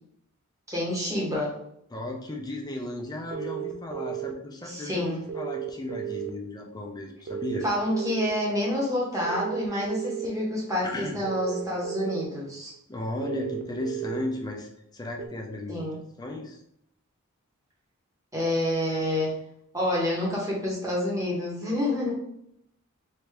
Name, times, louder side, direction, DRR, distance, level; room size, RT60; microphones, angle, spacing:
voice 1, 0.7-1.5 4.6-5.3 7.6-12.7 15.7-16.0 18.3-19.3 19.7-22.1, left 1 dB, 15° right, -4 dB, 0.9 m, -28 dB
voice 2, 1.9-7.7 10.8-11.2 12.9-15.8 16.2-16.6, left 1 dB, 15° left, 0 dB, 0.5 m, -35 dB
sound 1, 3.3-4.3 5.3-6.3 7.3-8.3 9.3-10.3 11.2-12.2 13.2-14.2 15.2-15.3, right 11 dB, 45° right, 0.3 m, -33 dB
3.3 x 2.7 x 3.3 m, 0.74 s
head